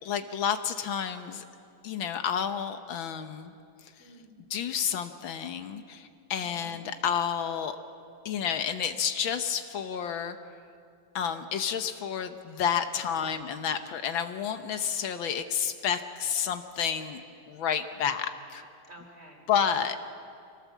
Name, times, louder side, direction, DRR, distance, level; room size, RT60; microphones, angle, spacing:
voice 1, 0.0-1.4 1.8-3.5 4.5-7.8 8.2-10.4 11.1-17.2 17.5-18.6 19.5-20.0, left 8 dB, 75° left, 8 dB, 1.7 m, -30 dB
voice 2, 4.0-4.4 6.4-6.8 13.3-13.9 18.9-19.5 19.8-19.9, right 1 dB, 30° right, 0 dB, 3.8 m, -53 dB
26.0 x 18.0 x 7.2 m, 2.4 s
omnidirectional pair, 2.2 m